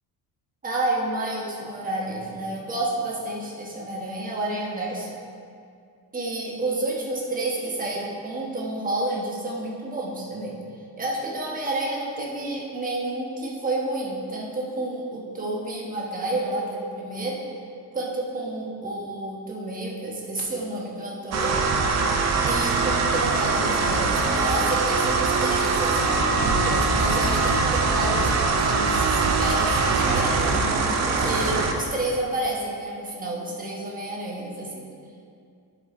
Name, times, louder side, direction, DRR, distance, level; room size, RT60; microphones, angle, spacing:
voice 1, 0.6-5.1 6.1-10.6 11.0-17.4 17.9-21.6 22.5-28.3 28.6-34.9, right 2 dB, 20° right, -3 dB, 1.2 m, -30 dB
sound 1, 21.3-31.7, right 4 dB, 45° right, 0.7 m, -22 dB
10.5 x 4.8 x 4.3 m, 2.4 s
cardioid pair, 170°, 39 cm